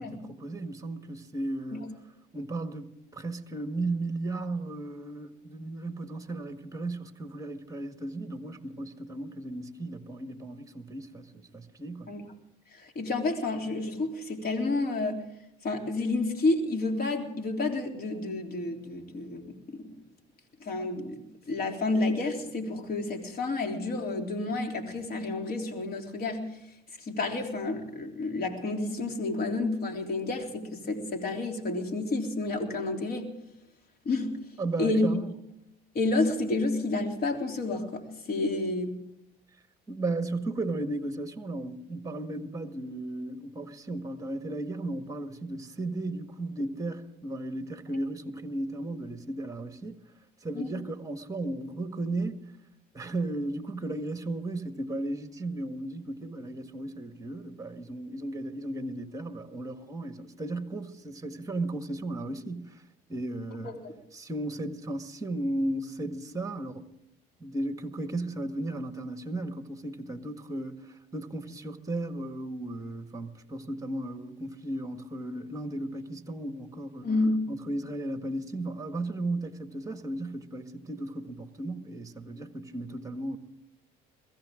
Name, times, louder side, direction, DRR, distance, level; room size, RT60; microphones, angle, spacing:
voice 1, 0.0-1.9 2.3-12.1 34.6-35.3 39.9-50.0 50.4-52.5 52.9-62.8 63.1-63.7 64.1-66.8 67.4-77.1 77.5-83.4, right 2 dB, 15° right, 1.7 m, -35 dB
voice 2, 12.7-15.2 15.6-19.9 20.6-21.2 21.5-26.5 27.0-33.3 34.0-34.4 34.8-35.1 35.9-38.9 50.5-50.7 63.6-63.9 77.0-77.4, left 2 dB, 50° left, 3.5 m, -30 dB
22.5 x 15.5 x 3.8 m
supercardioid pair, 85°, 20 cm